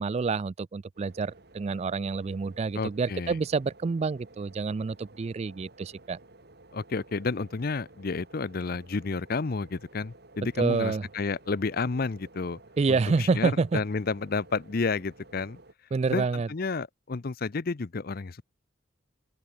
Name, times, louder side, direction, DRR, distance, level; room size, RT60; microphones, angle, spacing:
voice 1, 0.0-6.2 10.6-11.1 12.8-13.8 15.9-16.5, right 4 dB, 35° right, 0.3 m, -28 dB
sound 1, 0.9-15.7, right 2 dB, 55° right, 2.6 m, -54 dB
voice 2, 2.7-3.4 6.7-12.6 12.9-15.6 16.1-18.4, left 4 dB, 50° left, 0.6 m, -31 dB
open air
head